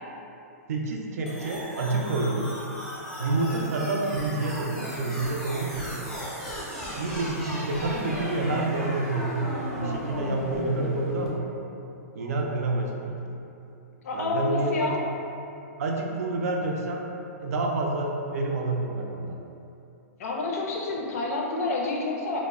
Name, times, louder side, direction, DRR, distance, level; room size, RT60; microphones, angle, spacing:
voice 1, 0.7-2.5 3.2-6.1 6.9-11.5 12.1-13.2 14.1-14.9 15.8-17.0 17.4-19.4, right 2 dB, 65° right, 0 dB, 0.4 m, -28 dB
sound 1, 1.3-11.3, equal, 5° left, 0.4 m, -35 dB
voice 2, 14.0-15.0 20.2-22.4, left 3 dB, 65° left, -2 dB, 0.5 m, -28 dB
2.0 x 2.0 x 3.4 m, 2.7 s
hypercardioid pair, 150°, 9 cm